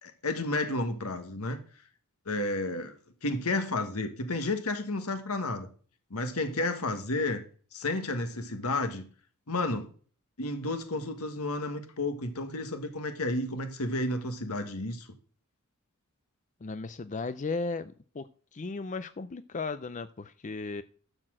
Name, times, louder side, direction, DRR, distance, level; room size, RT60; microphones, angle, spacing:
voice 1, 0.0-1.6 2.3-5.7 6.1-7.4 7.7-9.1 9.5-9.9 10.4-15.1, left 2 dB, 90° left, 1.5 m, -31 dB
voice 2, 16.6-18.3 18.5-20.8, left 3 dB, 35° left, 0.5 m, -35 dB
12.0 x 4.2 x 7.5 m
head